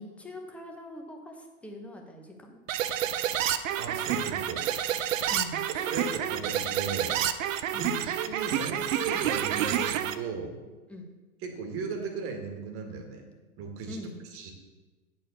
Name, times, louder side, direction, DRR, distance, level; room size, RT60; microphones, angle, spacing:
voice 1, 0.0-2.6 5.3-5.6 7.7-8.0 10.9-11.1 13.9-14.2, left 1 dB, 5° left, 2 dB, 0.8 m, -42 dB
sound 1, 2.7-10.1, right 10 dB, 60° right, 0.7 m, -29 dB
voice 2, 3.8-4.6 5.7-7.2 7.7-10.6 11.4-13.3 13.6-14.0 14.3-14.5, right 5 dB, 30° right, 4 dB, 1.6 m, -36 dB
8.5 x 4.7 x 6.6 m, 1.2 s
hypercardioid pair, 125°, 44 cm